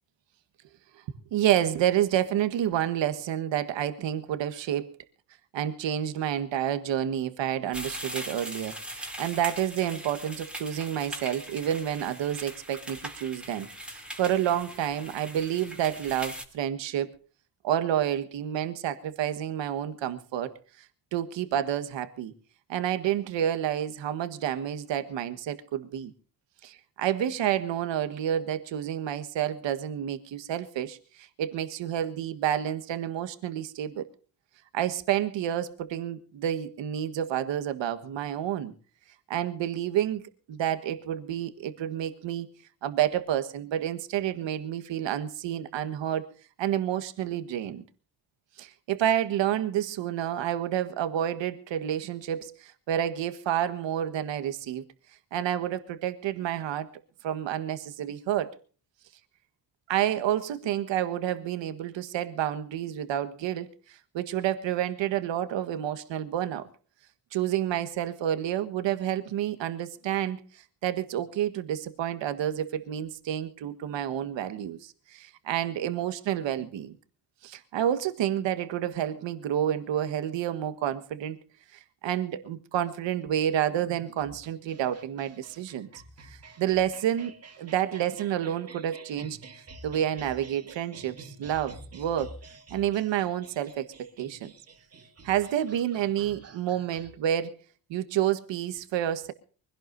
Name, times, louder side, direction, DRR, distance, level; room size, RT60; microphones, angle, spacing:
voice 1, 1.3-4.9 5.5-17.1 17.6-20.9 21.1-22.3 22.7-26.1 26.6-34.1 34.7-38.7 39.3-40.2 40.5-42.5 42.8-46.3 46.6-47.8 48.6-54.9 55.3-56.9 57.2-58.5 59.9-66.7 67.3-76.9 77.4-81.4 82.0-85.9 86.3-89.4 89.8-92.4 92.7-94.5 95.2-97.5 97.9-99.3, right 11 dB, 90° right, 1.6 m, -29 dB
sound 1, 7.7-16.4, right 1 dB, ahead, 2.7 m, -40 dB
sound 2, 84.2-97.1, right 3 dB, 35° right, 2.5 m, -49 dB
24.0 x 17.0 x 2.6 m
cardioid pair, 170°, 43 cm